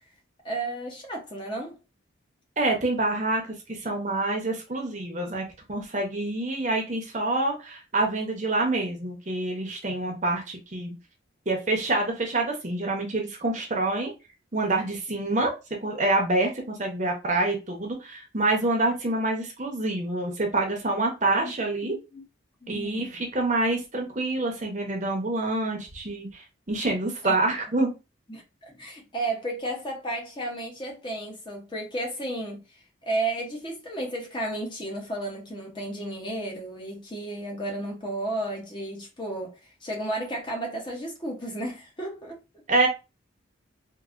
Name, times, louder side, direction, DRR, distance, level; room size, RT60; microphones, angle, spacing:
voice 1, 0.4-1.8 21.9-22.2 22.6-23.2 27.2-27.4 27.8-27.9 28.3-32.6 33.0-42.4, right 1 dB, 25° left, 0.8 m, -33 dB
voice 2, 2.6-10.9 11.5-14.1 14.5-15.5 15.8-21.9 22.7-27.9 42.7-42.9, right 2 dB, 35° right, 0.8 m, -27 dB
3.8 x 2.7 x 2.5 m
head